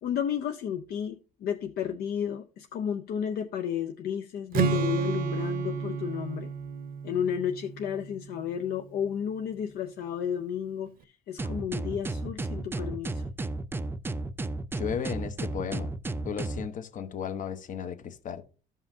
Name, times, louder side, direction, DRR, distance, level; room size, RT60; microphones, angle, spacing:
voice 1, 0.0-6.5 7.0-13.2, left 8 dB, 65° left, 0.6 m, -32 dB
Strum, 4.5-8.6, right 6 dB, 60° right, 0.7 m, -31 dB
sound 1, 11.4-16.7, right 2 dB, 15° right, 0.4 m, -33 dB
voice 2, 14.8-16.0 16.2-18.4, left 7 dB, 50° left, 1.0 m, -35 dB
14.0 x 5.5 x 2.7 m
cardioid pair, 110°, 17 cm